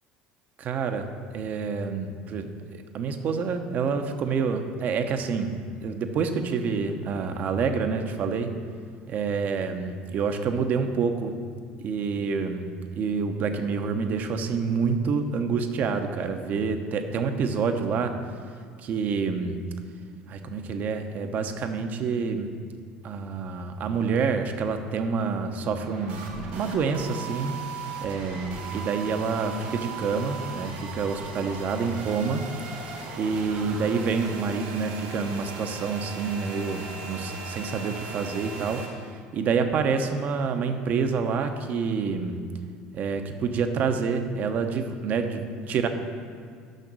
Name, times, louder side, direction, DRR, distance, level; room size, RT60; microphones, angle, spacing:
voice 1, 0.6-1.1 1.3-2.5 2.9-8.5 9.1-11.3 11.8-12.6 13.0-18.1 18.8-19.6 20.3-22.5 23.0-27.5 28.0-32.4 33.2-42.4 42.9-45.9, right 5 dB, 50° right, 7 dB, 0.8 m, -27 dB
sound 1, 25.8-38.9, right 4 dB, 75° right, 1.7 m, -38 dB
6.6 x 5.8 x 6.2 m, 2.2 s
supercardioid pair, 85°, 4 cm